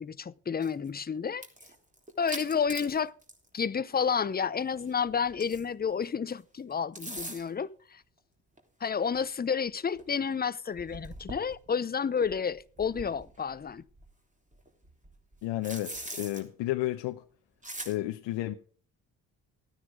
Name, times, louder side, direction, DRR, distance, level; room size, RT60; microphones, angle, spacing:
voice 1, 0.0-1.4 2.2-3.1 3.5-8.0 8.8-13.8, left 6 dB, 20° left, 0.7 m, -30 dB
sound 1, 0.6-0.9 1.3-3.5 3.8-4.0 4.7-5.9 6.7-7.6 8.6-8.7 9.1-9.2 9.7-9.8 10.0-10.1 10.7-11.7 12.2-14.1 14.5-16.4 17.6-18.0, right 1 dB, 15° right, 3.4 m, -43 dB
voice 2, 15.4-17.2 17.8-18.5, left 15 dB, 70° left, 0.9 m, -32 dB
13.5 x 9.6 x 4.9 m
hypercardioid pair, 55°, 45 cm